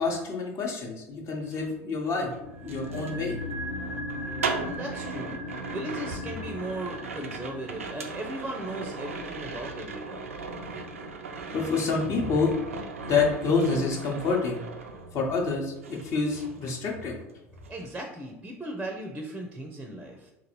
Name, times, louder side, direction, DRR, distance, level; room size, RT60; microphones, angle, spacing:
voice 1, 0.0-3.4 11.5-12.5 13.0-14.6 15.1-17.2, left 4 dB, 45° left, 1 dB, 1.0 m, -27 dB
sound 1, 1.4-15.5 15.8-17.3 17.6-17.9, right 4 dB, 85° right, 0.4 m, -38 dB
sound 2, 2.4-12.7 13.0-13.1, left 1 dB, 85° left, 1.1 m, -39 dB
voice 2, 4.6-5.4 5.7-10.2 17.7-20.3, right 1 dB, 10° right, 1 dB, 0.6 m, -37 dB
3.9 x 2.5 x 3.0 m, 0.97 s
figure-of-eight pair, 70°, 7 cm